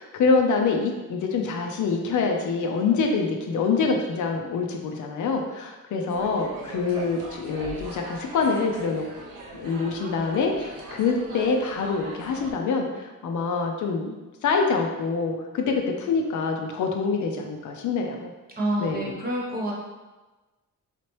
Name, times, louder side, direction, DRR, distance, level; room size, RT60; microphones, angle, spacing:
voice 1, 0.0-9.1 9.5-14.2 14.4-18.3 18.8-19.1, left 4 dB, 65° left, 2 dB, 0.6 m, -25 dB
sound 1, 6.1-12.5, right 2 dB, 75° right, 0.8 m, -41 dB
voice 2, 18.6-19.7, right 1 dB, 30° right, -4 dB, 1.0 m, -27 dB
4.0 x 3.0 x 3.1 m, 1.2 s
cardioid pair, 135°, 32 cm